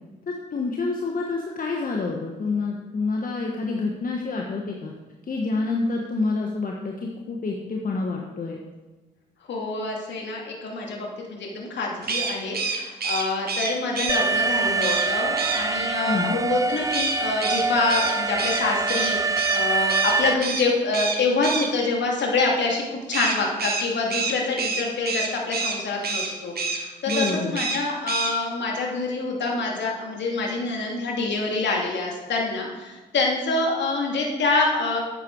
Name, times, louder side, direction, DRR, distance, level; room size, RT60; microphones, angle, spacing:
voice 1, 0.3-4.9 5.3-8.6 16.1-16.4 27.1-27.6, left 3 dB, 45° left, 0 dB, 1.6 m, -27 dB
voice 2, 9.5-35.0, left 3 dB, 60° left, -1 dB, 2.7 m, -26 dB
sound 1, 12.0-14.2 14.8-15.1 15.4-15.6 16.9-19.6 19.9-20.1 20.4-20.7 20.9-21.7 23.1-25.8 26.0-26.3 26.5-26.8 27.1-27.8 28.1-28.3, right 4 dB, 50° right, 1.9 m, -27 dB
Alarm, 14.1-20.3, right 4 dB, 15° right, 0.8 m, -25 dB
12.0 x 9.1 x 4.8 m, 1.2 s
hypercardioid pair, 40°, 21 cm